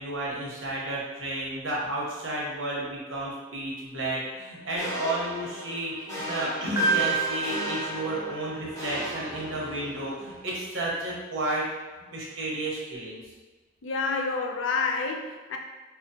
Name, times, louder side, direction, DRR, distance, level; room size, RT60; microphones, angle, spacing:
voice 1, 0.0-11.6 12.1-13.2, right 1 dB, 70° right, -5 dB, 1.1 m, -32 dB
sound 1, 4.8-10.1, equal, 15° left, 0.9 m, -36 dB
Piano, 6.8-8.9, right 3 dB, 15° right, 0.7 m, -29 dB
voice 2, 13.8-15.6, left 4 dB, 70° left, 2 dB, 0.4 m, -28 dB
4.9 x 2.1 x 2.7 m, 1.3 s
head